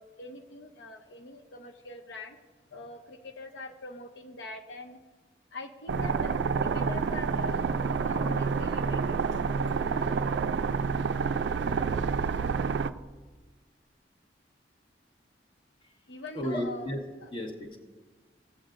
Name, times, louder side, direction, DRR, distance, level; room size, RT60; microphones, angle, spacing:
voice 1, 0.0-2.4 2.7-5.0 5.5-9.2 16.1-16.9 17.2-17.3, left 3 dB, 80° left, 4 dB, 0.6 m, -43 dB
sound 1, 5.9-12.9, right 5 dB, 80° right, 0.3 m, -28 dB
voice 2, 16.3-17.0 17.3-17.8, equal, 30° left, 2 dB, 1.1 m, -33 dB
16.5 x 7.9 x 2.5 m, 1.4 s
head